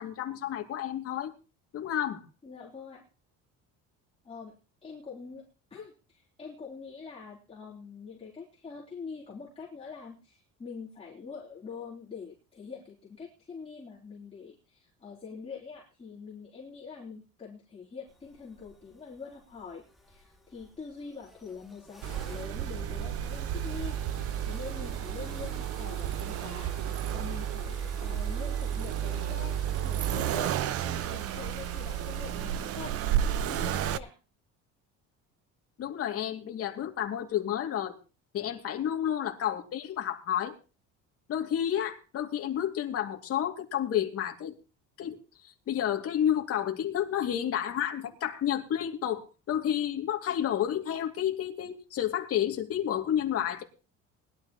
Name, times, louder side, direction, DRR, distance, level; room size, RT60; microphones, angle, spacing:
voice 1, 0.0-1.3 1.7-2.2 35.8-38.0 38.3-40.6 41.3-44.6 45.0-45.2 45.4-53.6, left 10 dB, 45° left, 3 dB, 2.6 m, -30 dB
voice 2, 2.4-3.0 4.2-4.5 4.8-34.2, left 5 dB, 20° left, -6 dB, 3.7 m, -45 dB
sound 1, 18.1-34.0, left 1 dB, ahead, 2.1 m, -51 dB
Accelerating revving vroom, 22.0-34.0, right 10 dB, 50° right, 0.7 m, -32 dB
20.5 x 12.0 x 3.1 m, 0.33 s
cardioid pair, 150°, 32 cm